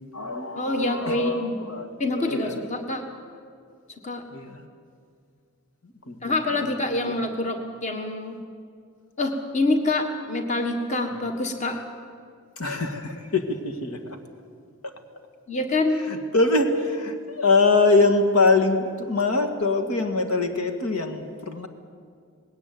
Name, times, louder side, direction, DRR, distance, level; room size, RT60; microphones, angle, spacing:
voice 1, 0.0-2.6 4.3-4.7 6.1-6.7 7.0-7.2 12.6-14.2 14.8-14.9 16.0-21.7, left 3 dB, 90° left, 6 dB, 2.0 m, -24 dB
voice 2, 0.6-1.5 2.0-3.0 4.0-4.2 6.2-8.4 9.2-11.8 15.5-16.0, left 2 dB, 30° left, 5 dB, 1.6 m, -26 dB
19.5 x 17.5 x 9.4 m, 2.2 s
head